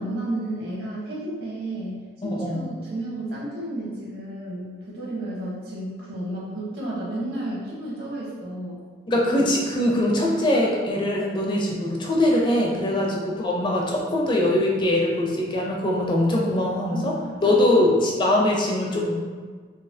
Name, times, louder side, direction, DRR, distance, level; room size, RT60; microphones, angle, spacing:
voice 1, 0.0-8.8 16.9-17.1 17.4-17.9, right 1 dB, 60° right, -5 dB, 1.1 m, -32 dB
voice 2, 2.2-2.7 9.1-17.1 17.4-19.2, left 1 dB, 25° left, -2 dB, 0.4 m, -22 dB
4.0 x 2.7 x 2.7 m, 1.5 s
head